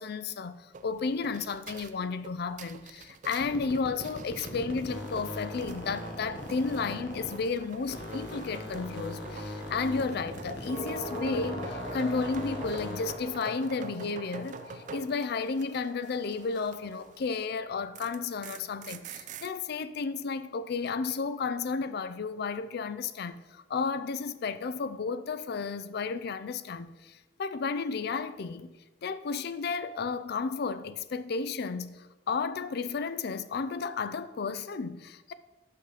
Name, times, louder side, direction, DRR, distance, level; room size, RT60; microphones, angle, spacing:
voice 1, 0.0-28.7 29.0-35.3, left 4 dB, 55° left, 0.4 m, -33 dB
sound 1, 0.7-17.3 17.6-19.5, right 5 dB, 40° right, 0.4 m, -47 dB
sound 2, 3.4-7.6 7.9-13.3, left 1 dB, 75° left, 1.3 m, -40 dB
sound 3, 10.6-19.0 19.3-19.4, equal, 40° left, 2.7 m, -43 dB
6.7 x 5.8 x 4.9 m
head